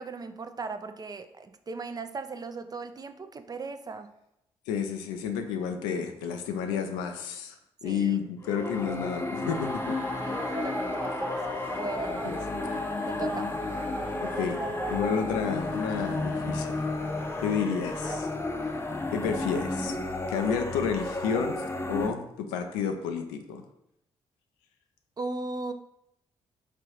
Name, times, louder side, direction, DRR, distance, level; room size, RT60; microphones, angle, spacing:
voice 1, 0.0-4.1 7.8-8.2 10.2-11.4 11.7-12.2 13.1-13.5 25.2-25.7, right 3 dB, 30° right, 9 dB, 0.4 m, -37 dB
voice 2, 4.7-7.6 7.8-10.0 10.5-10.6 12.2-12.4 14.2-16.8 17.4-18.3 19.1-20.0 20.3-21.6 21.9-23.6, left 6 dB, 80° left, 5 dB, 0.4 m, -30 dB
sound 1, 8.4-22.1, left 2 dB, 20° left, 0.6 m, -32 dB
sound 2, 9.4-18.2, right 1 dB, 15° right, 1.0 m, -39 dB
3.3 x 2.5 x 4.4 m, 0.81 s
hypercardioid pair, 40°, 13 cm